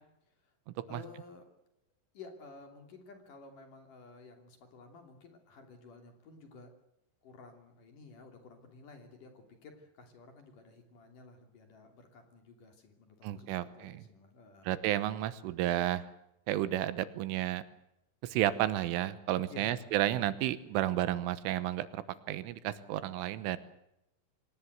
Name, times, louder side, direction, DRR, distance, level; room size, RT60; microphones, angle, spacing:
voice 1, 0.9-1.4 2.1-6.7 7.2-14.7 19.5-19.9, left 3 dB, 45° left, 5 dB, 4.0 m, -53 dB
voice 2, 13.2-14.0 14.7-16.0 16.5-17.6 18.2-23.6, right 13 dB, 80° right, 14 dB, 3.6 m, -32 dB
25.0 x 19.5 x 8.1 m, 0.83 s
omnidirectional pair, 5.7 m